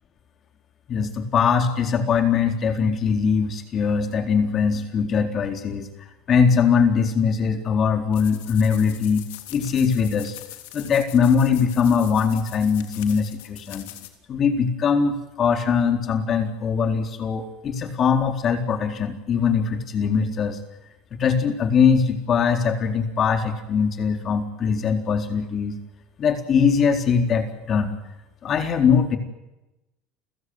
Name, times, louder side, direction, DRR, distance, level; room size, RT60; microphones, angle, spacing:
voice 1, 0.9-5.9 6.3-9.3 9.5-10.4 10.7-13.9 14.3-20.6 21.1-25.8 26.2-28.0 28.4-29.2, left 6 dB, 35° left, 6 dB, 4.0 m, -21 dB
sound 1, 8.1-14.1, left 15 dB, 85° left, 3.3 m, -42 dB
29.5 x 15.5 x 9.7 m, 0.97 s
supercardioid pair, 125°, 0 cm